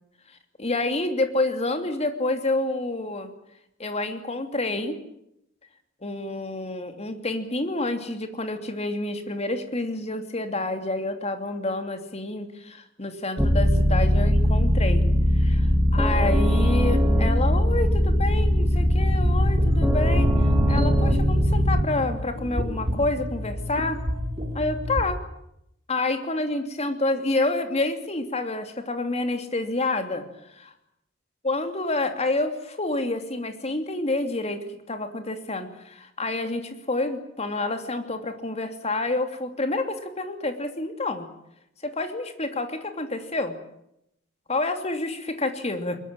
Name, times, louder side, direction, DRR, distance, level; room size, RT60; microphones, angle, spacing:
voice 1, 0.6-3.3 3.8-5.0 6.0-15.1 15.3-20.3 20.7-24.0 24.5-25.2 25.9-30.2 31.4-41.3 41.8-43.5 44.5-46.0, left 2 dB, 35° left, 7 dB, 2.9 m, -28 dB
sound 1, 13.4-21.8, equal, 5° right, 2.5 m, -20 dB
sound 2, 19.1-25.0, left 1 dB, 30° right, 6.2 m, -30 dB
22.0 x 21.5 x 8.9 m, 0.79 s
head